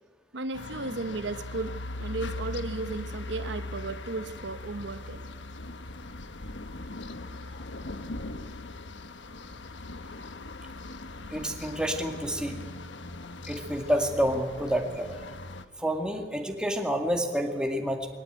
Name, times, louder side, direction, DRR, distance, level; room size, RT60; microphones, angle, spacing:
voice 1, 0.3-5.3, right 3 dB, 80° right, 1.0 m, -35 dB
sound 1, 0.5-15.6, left 2 dB, 85° left, 1.2 m, -40 dB
voice 2, 11.3-12.6 13.5-15.2 15.8-18.1, equal, 5° right, 2.2 m, -28 dB
21.5 x 18.5 x 9.3 m
head